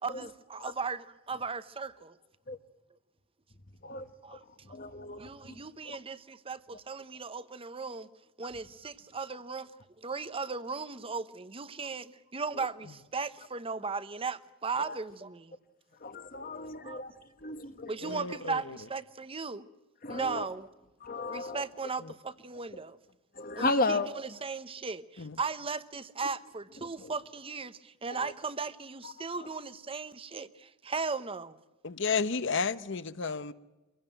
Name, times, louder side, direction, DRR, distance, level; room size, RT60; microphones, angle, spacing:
voice 1, 0.0-2.2 4.2-4.8 5.2-8.1 8.4-9.7 10.0-15.6 16.8-17.0 17.9-19.7 20.1-20.7 21.3-23.0 23.6-24.0 24.4-31.6, right 4 dB, 25° right, 0.9 m, -37 dB
voice 2, 3.8-4.4 4.6-6.0 12.5-12.7 14.8-15.0 16.0-17.9 20.0-20.5 21.0-21.6 23.3-24.1 27.0-27.1 28.1-28.3 29.0-29.5, left 2 dB, 45° left, 1.3 m, -35 dB
voice 3, 18.0-18.8 22.0-22.1 25.2-25.4 31.8-33.5, left 5 dB, 65° left, 1.0 m, -32 dB
24.5 x 17.0 x 8.9 m
head